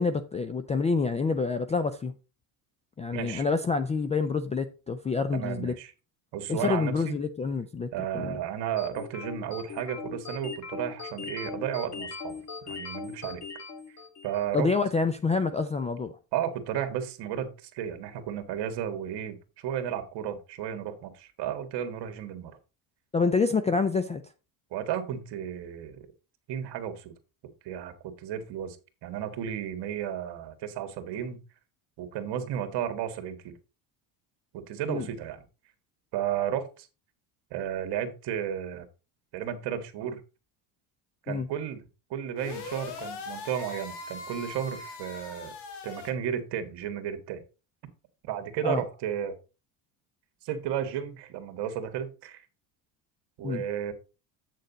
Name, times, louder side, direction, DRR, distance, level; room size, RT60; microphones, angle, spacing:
voice 1, 0.0-2.1 3.0-5.7 6.5-7.9 8.1-8.4 14.5-16.1 23.1-24.2 34.9-35.1 41.3-41.5 48.6-48.8 53.4-53.6, left 4 dB, 15° left, 0.3 m, -27 dB
voice 2, 3.1-3.5 5.3-5.9 6.3-7.1 7.9-13.4 14.2-14.7 16.3-22.6 24.7-26.1 26.5-27.1 27.6-28.8 29.0-31.4 32.0-33.5 34.5-35.4 36.1-36.9 37.5-38.8 39.3-40.2 41.3-45.5 45.8-47.4 48.2-49.3 50.4-52.4 53.4-53.9, right 9 dB, 60° right, 1.7 m, -33 dB
sound 1, 8.8-14.5, left 5 dB, 35° left, 1.5 m, -39 dB
sound 2, 42.4-46.1, left 4 dB, 60° left, 2.1 m, -40 dB
8.0 x 6.5 x 4.0 m
cardioid pair, 130°, 47 cm